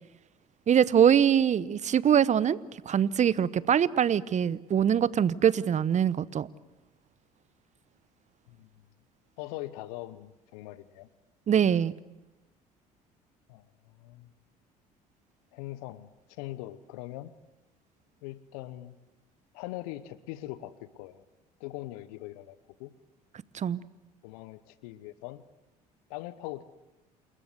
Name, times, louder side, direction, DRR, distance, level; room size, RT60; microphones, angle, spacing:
voice 1, 0.7-2.6 2.9-6.5 11.5-11.9 23.5-23.8, right 8 dB, 35° right, 20 dB, 0.9 m, -23 dB
voice 2, 9.4-11.1 13.5-14.3 15.5-17.3 18.2-19.0 19.5-21.2 21.6-22.9 24.2-25.4 26.1-26.6, left 16 dB, 70° left, 16 dB, 1.0 m, -41 dB
28.5 x 21.0 x 8.1 m, 1.0 s
hypercardioid pair, 60°, 20 cm